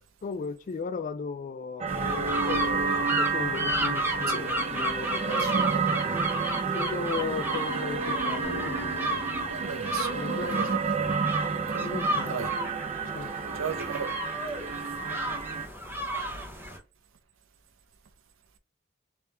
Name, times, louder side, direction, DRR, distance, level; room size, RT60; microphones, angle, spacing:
voice 1, 0.2-5.8 6.1-6.3 6.7-8.9 10.2-10.7 11.8-12.4 13.1-13.3, left 5 dB, 40° left, 0.3 m, -36 dB
sound 1, 1.8-15.7, right 5 dB, 35° right, 0.4 m, -30 dB
sound 2, 1.9-16.8, right 1 dB, 10° right, 1.0 m, -33 dB
voice 2, 5.4-6.2 9.5-11.9 12.2-12.5 13.2-14.1 15.5-15.7, right 6 dB, 80° right, 0.6 m, -38 dB
Acoustic guitar, 8.4-11.4, left 1 dB, 60° left, 0.9 m, -45 dB
3.5 x 3.3 x 2.9 m
head